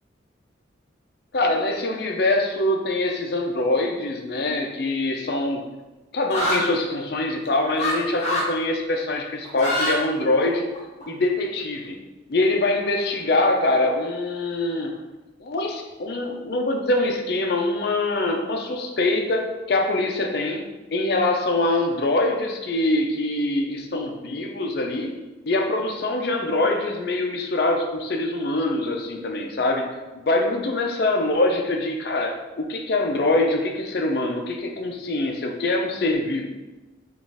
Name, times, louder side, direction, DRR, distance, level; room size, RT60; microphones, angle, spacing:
voice 1, 1.3-5.6 6.1-10.7 11.1-12.0 12.3-14.9 15.4-20.6 20.9-25.1 25.4-36.5, left 2 dB, 55° left, 3 dB, 0.4 m, -24 dB
sound 1, 6.3-6.6 7.8-7.9 8.2-8.5 9.4-10.0 10.3-11.0, left 1 dB, 35° left, 0.8 m, -24 dB
4.1 x 2.4 x 3.4 m, 1.1 s
head